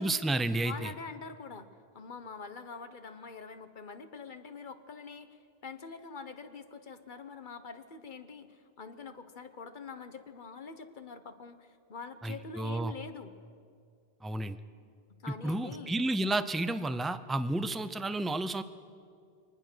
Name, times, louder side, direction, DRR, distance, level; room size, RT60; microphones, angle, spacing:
voice 1, 0.0-0.9 12.2-12.9 14.2-14.6 15.4-18.6, right 2 dB, ahead, 11 dB, 0.4 m, -31 dB
voice 2, 0.6-1.7 1.9-13.3 15.2-15.9, left 4 dB, 50° left, 9 dB, 1.2 m, -45 dB
23.0 x 19.5 x 6.2 m, 2.3 s
omnidirectional pair, 1.0 m